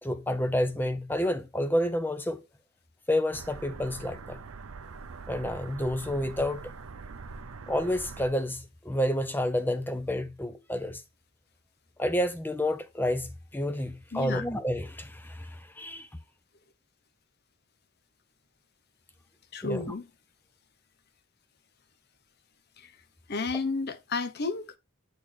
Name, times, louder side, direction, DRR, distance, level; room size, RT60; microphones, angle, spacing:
voice 1, 0.0-2.4 3.1-4.4 5.3-6.6 7.7-11.0 12.0-16.1 19.6-19.8, left 1 dB, 10° left, 0.7 m, -29 dB
sound 1, 3.3-8.3, right 4 dB, 80° right, 0.7 m, -43 dB
voice 2, 14.1-14.4 19.5-20.1 22.8-22.9 23.3-24.8, left 4 dB, 50° left, 0.7 m, -32 dB
8.6 x 4.3 x 3.4 m
head